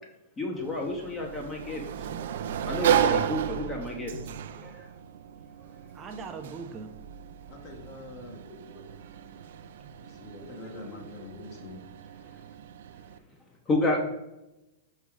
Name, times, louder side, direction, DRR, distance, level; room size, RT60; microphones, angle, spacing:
voice 1, 0.4-1.8 2.6-4.1 4.6-4.9 10.6-11.0 13.7-14.1, left 2 dB, 20° left, 1 dB, 1.0 m, -30 dB
Sliding door, 0.5-13.2, right 9 dB, 70° right, 0.4 m, -33 dB
voice 2, 5.9-6.9 8.4-9.0, right 5 dB, 20° right, 3 dB, 0.7 m, -41 dB
voice 3, 7.5-8.4 10.0-11.8, left 2 dB, 40° left, 1 dB, 1.6 m, -44 dB
5.4 x 3.7 x 4.9 m, 0.94 s
hypercardioid pair, 145°, 0 cm